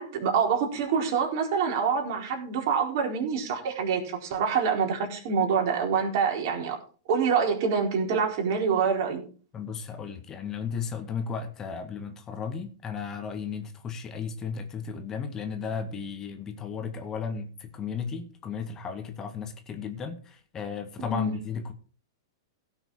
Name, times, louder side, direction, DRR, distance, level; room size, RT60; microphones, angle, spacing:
voice 1, 0.0-6.8 7.1-9.3 21.0-21.3, right 6 dB, 55° right, 4.2 m, -26 dB
voice 2, 9.5-21.7, left 6 dB, 25° left, 1.8 m, -35 dB
17.0 x 6.3 x 4.8 m
hypercardioid pair, 110°, 2 cm